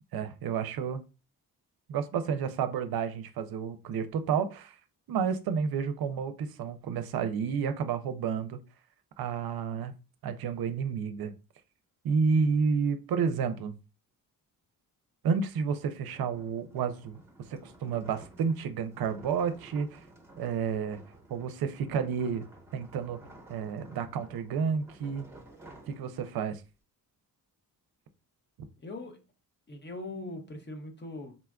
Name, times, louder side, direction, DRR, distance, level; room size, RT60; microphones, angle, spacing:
voice 1, 0.1-1.0 1.9-4.8 5.1-8.6 9.2-9.9 10.2-11.3 12.0-13.8 15.2-17.2 17.5-20.0 20.4-21.0 21.3-22.4 22.7-23.2 23.5-25.3 25.9-26.6, right 6 dB, 75° right, 0.5 m, -30 dB
sound 1, 15.6-26.6, right 1 dB, 5° right, 0.9 m, -54 dB
voice 2, 28.8-29.2 29.7-31.4, left 2 dB, 30° left, 0.6 m, -40 dB
3.9 x 2.3 x 2.2 m
cardioid pair, 110°, 37 cm